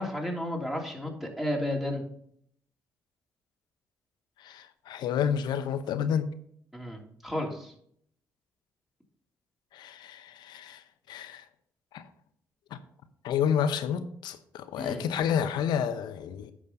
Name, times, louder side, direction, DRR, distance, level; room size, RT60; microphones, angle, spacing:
voice 1, 0.0-2.0 6.7-7.7 14.8-15.0, left 1 dB, ahead, 0 dB, 3.0 m, -32 dB
voice 2, 4.4-6.3 9.7-10.8 11.1-11.4 11.9-12.0 12.7-12.8 13.2-16.5, left 8 dB, 75° left, 10 dB, 0.8 m, -30 dB
9.8 x 6.3 x 4.0 m, 0.65 s
hypercardioid pair, 45°, 8 cm